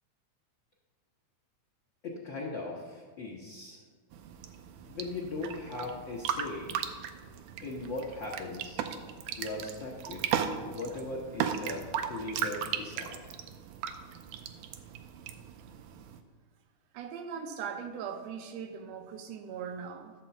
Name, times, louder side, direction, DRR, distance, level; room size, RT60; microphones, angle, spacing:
voice 1, 2.0-3.8 4.8-6.7 7.6-8.8 9.4-10.2 10.6-13.2, left 2 dB, 55° left, -3 dB, 1.3 m, -39 dB
sound 1, 4.1-16.2, right 8 dB, 85° right, 2.1 m, -37 dB
voice 2, 16.9-20.1, right 7 dB, 70° right, 6 dB, 1.9 m, -40 dB
13.0 x 4.4 x 7.0 m, 1.5 s
omnidirectional pair, 3.6 m